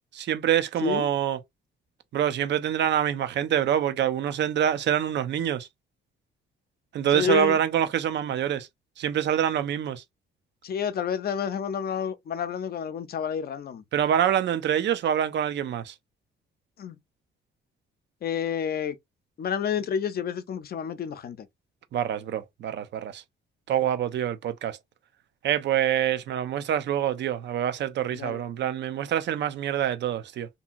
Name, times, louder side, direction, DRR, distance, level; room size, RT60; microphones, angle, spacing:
voice 1, 0.0-1.4 2.1-5.7 6.9-8.7 9.0-10.0 13.9-15.9 21.9-23.2 23.7-24.8 25.4-30.5, right 10 dB, 65° right, 0.5 m, -26 dB
voice 2, 7.1-7.6 10.6-13.8 16.8-17.0 18.2-19.0 19.4-21.4 28.1-28.4, left 7 dB, 50° left, 0.6 m, -29 dB
2.8 x 2.7 x 2.5 m
cardioid pair, 90°, 20 cm